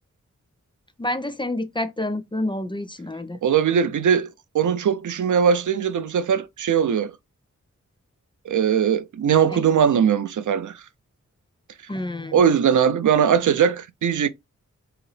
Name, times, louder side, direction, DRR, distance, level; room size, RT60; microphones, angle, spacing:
voice 1, 1.0-3.4 9.5-9.6 11.9-12.4, left 1 dB, 15° left, 0.4 m, -28 dB
voice 2, 3.4-4.3 4.5-7.1 8.5-10.8 12.3-14.3, right 7 dB, 80° right, 0.4 m, -20 dB
4.7 x 2.0 x 3.1 m
wide cardioid pair, 90°, 30 cm